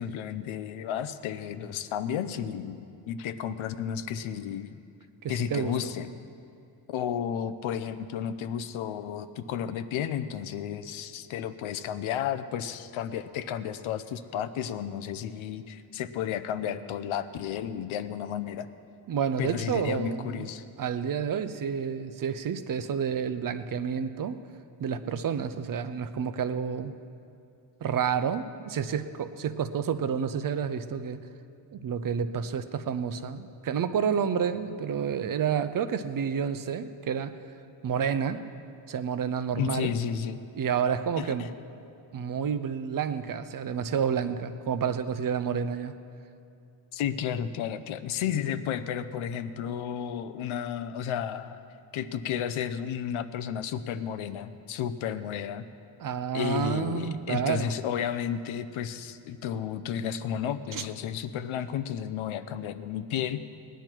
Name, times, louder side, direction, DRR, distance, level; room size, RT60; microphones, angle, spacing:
voice 1, 0.0-4.8 5.3-6.1 6.9-18.7 19.4-20.6 39.6-40.4 41.2-41.5 46.9-51.6 51.9-55.7 56.3-63.4, left 9 dB, 85° left, 11 dB, 0.8 m, -32 dB
voice 2, 5.2-5.9 19.1-20.5 20.8-24.4 24.8-26.9 27.8-31.2 31.7-37.4 37.8-38.4 38.9-39.9 40.6-41.5 42.1-45.9 56.0-57.8 60.7-60.8, right 7 dB, 45° right, 11 dB, 0.6 m, -29 dB
19.0 x 10.0 x 4.5 m, 2.5 s
cardioid pair, 130°, 47 cm